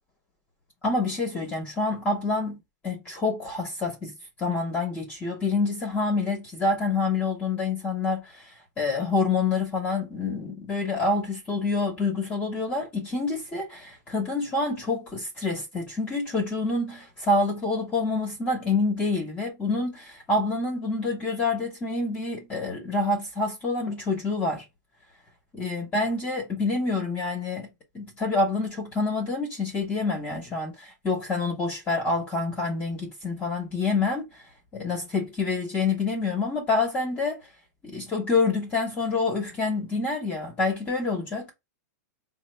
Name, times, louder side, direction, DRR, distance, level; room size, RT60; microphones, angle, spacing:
voice 1, 0.8-2.6 2.8-4.1 4.4-24.6 25.5-27.7 27.9-34.4 34.7-37.4 37.8-41.5, left 3 dB, 15° left, 1.0 m, -27 dB
4.9 x 2.1 x 3.1 m
supercardioid pair, 170°, 9 cm